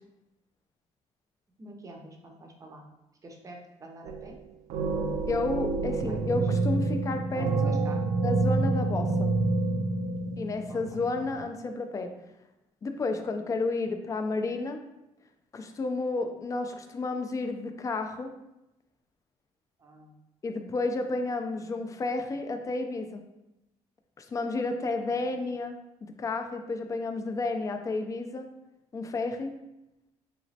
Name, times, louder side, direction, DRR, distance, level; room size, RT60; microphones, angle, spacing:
voice 1, 1.6-2.8 3.2-4.4 5.8-6.4 7.3-8.1 10.7-11.0 19.8-20.1 25.1-25.2, right 2 dB, 30° right, 1 dB, 0.5 m, -46 dB
sound 1, 4.1-4.4 4.7-11.4, right 3 dB, 80° right, 0.4 m, -28 dB
voice 2, 5.3-7.8 8.2-9.3 10.4-12.1 12.8-14.8 15.5-18.3 20.4-23.2 24.2-25.7 26.2-28.5 28.9-29.6, left 3 dB, 25° left, 6 dB, 0.3 m, -31 dB
3.0 x 3.0 x 2.7 m, 0.92 s
cardioid pair, 120°, 12 cm